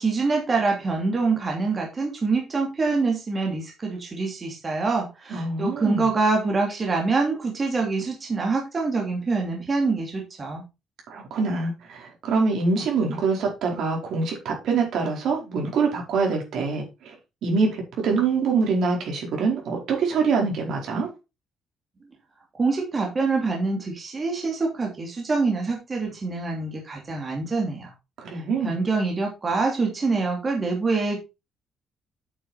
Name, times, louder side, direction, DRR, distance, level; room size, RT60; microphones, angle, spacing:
voice 1, 0.0-10.6 22.6-27.9 28.3-31.2, right 3 dB, 30° right, 3.0 m, -25 dB
voice 2, 5.3-6.1 11.1-17.2 17.4-21.1 28.2-28.7, right 4 dB, 70° right, 4.6 m, -25 dB
8.5 x 7.1 x 4.3 m
cardioid pair, 125°, 0 cm